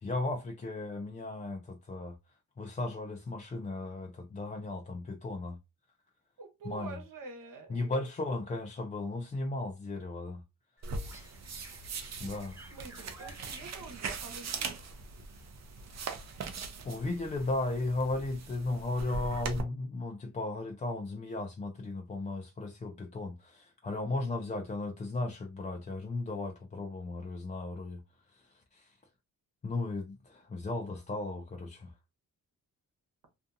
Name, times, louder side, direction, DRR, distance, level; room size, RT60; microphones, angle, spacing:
voice 1, 0.0-2.2 2.6-5.6 6.7-6.9 7.7-10.4 10.9-11.1 12.2-12.6 16.8-28.0 28.3-28.4 28.7-28.9 29.6-31.9, left 2 dB, 25° left, 0.3 m, -35 dB
voice 2, 6.4-8.1 8.3-8.4 12.4-14.7, right 4 dB, 65° right, 1.0 m, -47 dB
sound 1, 10.8-18.1, right 1 dB, 10° right, 0.9 m, -56 dB
sound 2, 10.8-19.6, right 4 dB, 50° right, 0.6 m, -41 dB
2.6 x 2.3 x 2.6 m
cardioid pair, 95°, 35 cm